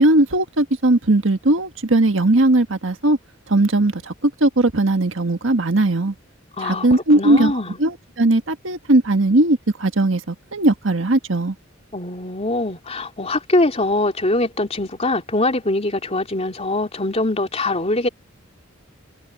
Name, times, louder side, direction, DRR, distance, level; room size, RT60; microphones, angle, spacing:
voice 1, 0.0-3.2 3.5-6.1 6.6-7.5 7.8-11.5, right 2 dB, 75° right, 1.6 m, -18 dB
voice 2, 6.6-6.9 7.2-7.8 11.9-18.1, left 2 dB, 30° left, 3.1 m, -22 dB
head